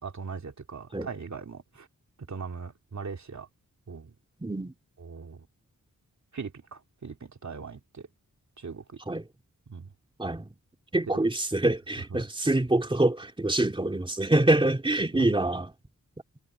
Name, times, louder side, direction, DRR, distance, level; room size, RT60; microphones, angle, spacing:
voice 1, 0.0-1.9 2.3-3.5 3.9-4.1 5.0-5.5 6.3-8.1 8.6-9.0 9.7-9.9 11.1-11.2 12.1-12.2 15.1-15.3, right 5 dB, 60° right, 3.0 m, -39 dB
voice 2, 4.4-4.7 9.1-9.3 10.2-10.5 10.9-15.7, right 2 dB, 15° right, 2.6 m, -25 dB
wide cardioid pair, 100°, 32 cm